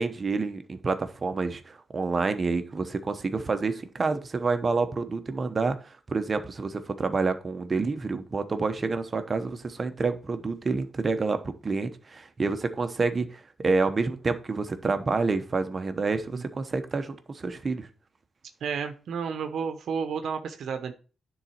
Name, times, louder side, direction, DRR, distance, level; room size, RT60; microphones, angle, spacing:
voice 1, 0.0-17.9, right 4 dB, 35° right, 9 dB, 0.9 m, -28 dB
voice 2, 18.6-20.9, right 6 dB, 75° right, 6 dB, 0.8 m, -31 dB
9.8 x 4.0 x 4.4 m, 0.35 s
cardioid pair, 100°, 0 cm